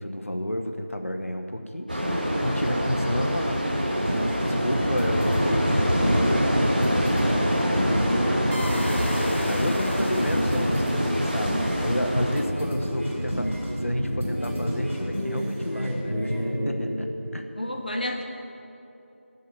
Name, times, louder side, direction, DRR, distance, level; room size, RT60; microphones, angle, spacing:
voice 1, 0.0-8.8 9.4-17.5, equal, 80° left, 5 dB, 1.5 m, -31 dB
sound 1, 1.9-12.4, equal, 40° right, 1.7 m, -25 dB
sound 2, 4.0-17.0, equal, 5° right, 2.4 m, -30 dB
voice 2, 7.7-8.3 9.8-10.7 17.6-18.2, left 1 dB, 40° left, 2 dB, 1.5 m, -31 dB
sound 3, 8.5-11.7, left 1 dB, 55° left, 0.9 m, -37 dB
11.0 x 7.4 x 9.8 m, 2.8 s
figure-of-eight pair, 175°, 7 cm